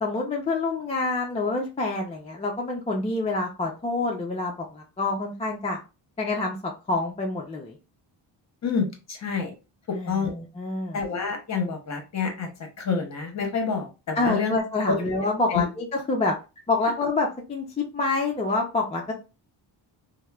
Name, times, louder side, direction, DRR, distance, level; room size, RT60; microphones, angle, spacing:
voice 1, 0.0-5.8 6.2-6.6 6.9-7.8 9.9-11.0 14.2-16.3 16.7-19.1, left 3 dB, 15° left, -1 dB, 0.3 m, -27 dB
voice 2, 8.6-9.5 9.9-10.3 10.9-12.5 12.8-14.5 14.9-15.0 15.5-15.7, left 5 dB, 40° left, 3 dB, 0.8 m, -27 dB
3.0 x 2.0 x 2.2 m, 0.30 s
cardioid pair, 120°, 44 cm